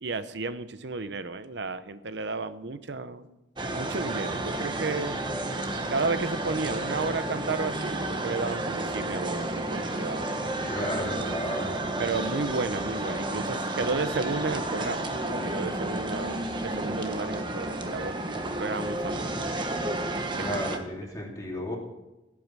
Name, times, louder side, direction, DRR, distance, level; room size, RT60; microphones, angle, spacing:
voice 1, 0.0-3.3 3.8-5.2 5.9-10.3 12.0-15.1 15.4-19.5 20.3-20.8, right 3 dB, 75° right, 13 dB, 0.8 m, -33 dB
sound 1, 3.6-20.8, right 1 dB, 25° right, 1.2 m, -31 dB
voice 2, 10.7-11.7 20.3-21.8, equal, 20° left, -2 dB, 3.1 m, -33 dB
16.0 x 8.6 x 6.1 m, 1.0 s
head